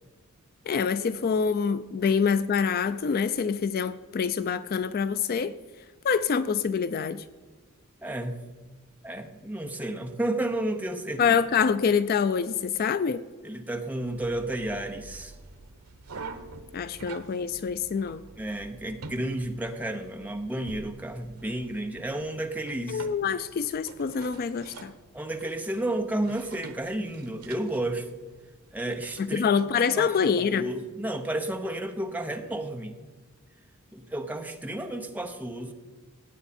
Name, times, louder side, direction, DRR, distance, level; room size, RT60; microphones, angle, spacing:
voice 1, 0.7-5.5 6.0-7.2 11.2-13.2 16.7-18.2 22.9-24.9 29.2-30.7, left 6 dB, 40° left, 14 dB, 0.3 m, -26 dB
voice 2, 8.0-8.4 9.0-11.4 13.4-15.3 18.4-23.1 25.1-28.1 28.7-29.5 30.0-33.0 33.9-35.7, right 1 dB, 5° right, 4 dB, 0.8 m, -32 dB
sound 1, 14.0-29.2, right 3 dB, 90° right, 0.9 m, -47 dB
16.5 x 8.7 x 4.2 m, 1.4 s
head